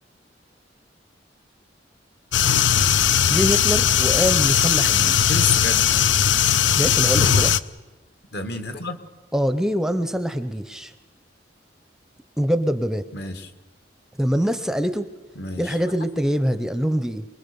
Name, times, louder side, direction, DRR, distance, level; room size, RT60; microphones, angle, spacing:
sound 1, 2.3-7.6, left 9 dB, 90° left, 0.7 m, -18 dB
voice 1, 3.3-5.4 6.7-7.5 9.3-10.9 12.4-13.1 14.2-15.1 15.6-17.3, equal, 5° right, 10 dB, 0.6 m, -24 dB
voice 2, 5.3-6.0 8.3-9.0 13.1-13.5 15.3-15.8, left 3 dB, 60° left, 9 dB, 1.8 m, -29 dB
24.0 x 21.5 x 6.9 m, 1.2 s
head